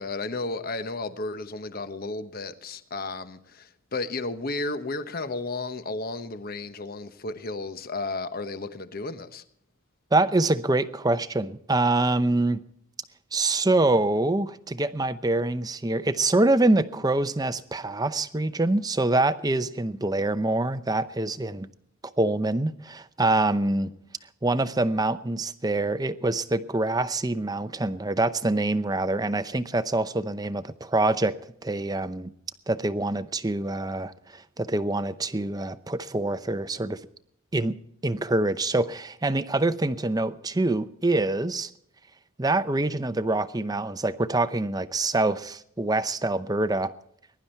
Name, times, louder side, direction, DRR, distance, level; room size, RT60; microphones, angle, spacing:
voice 1, 0.0-9.4, left 3 dB, 45° left, 1.0 m, -33 dB
voice 2, 10.1-12.6 13.3-21.7 22.2-23.9 24.4-31.4 31.6-32.3 32.7-37.0 37.5-37.7 38.0-41.7 42.4-46.9, right 2 dB, 20° right, 0.7 m, -25 dB
21.5 x 11.5 x 4.4 m
head